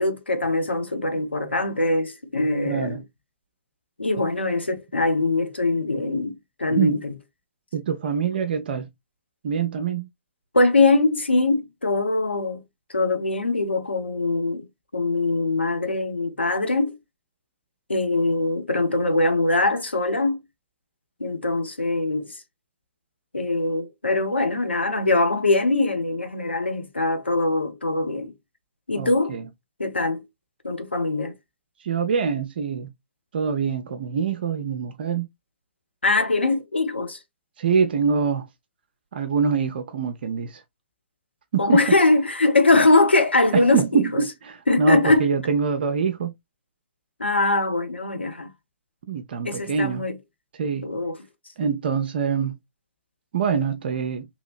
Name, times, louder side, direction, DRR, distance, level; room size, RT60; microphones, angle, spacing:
voice 1, 0.0-3.0 4.0-7.1 10.5-12.6 12.9-14.7 14.9-17.0 17.9-20.4 21.2-22.3 23.3-28.3 28.9-29.4 29.8-30.2 30.6-31.3 36.0-37.2 41.6-44.2 44.7-45.3 47.2-48.5 49.4-50.2 50.8-51.2, left 2 dB, 90° left, 0.6 m, -22 dB
voice 2, 2.6-3.0 6.7-7.0 7.7-8.9 9.4-10.1 29.0-29.4 31.8-32.9 33.3-35.3 37.6-38.5 39.1-40.6 41.5-41.8 43.5-46.3 49.1-50.1 50.5-50.9 51.6-52.6 53.3-54.3, right 6 dB, 65° right, 0.5 m, -24 dB
2.8 x 2.8 x 2.3 m
figure-of-eight pair, 115°, 6 cm